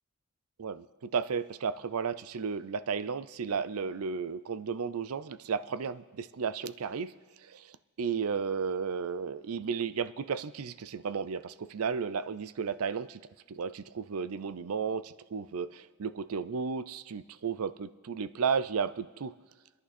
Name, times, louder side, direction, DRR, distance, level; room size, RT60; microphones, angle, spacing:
voice 1, 0.6-7.1 7.5-7.6 8.0-13.2 13.5-19.3, right 6 dB, 80° right, 16 dB, 0.5 m, -33 dB
28.5 x 11.0 x 4.2 m, 1.4 s
head